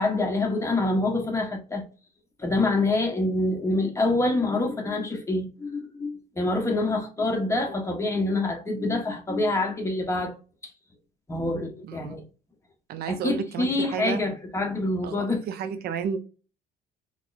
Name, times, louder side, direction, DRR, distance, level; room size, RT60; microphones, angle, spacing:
voice 1, 0.0-1.8 2.4-10.3 10.6-10.7 11.3-12.2 13.1-15.4, left 2 dB, 15° left, 1.1 m, -26 dB
voice 2, 11.9-12.2 12.9-14.2 15.0-16.2, right 7 dB, 65° right, 0.5 m, -32 dB
3.5 x 3.1 x 2.4 m
cardioid pair, 110°, 17 cm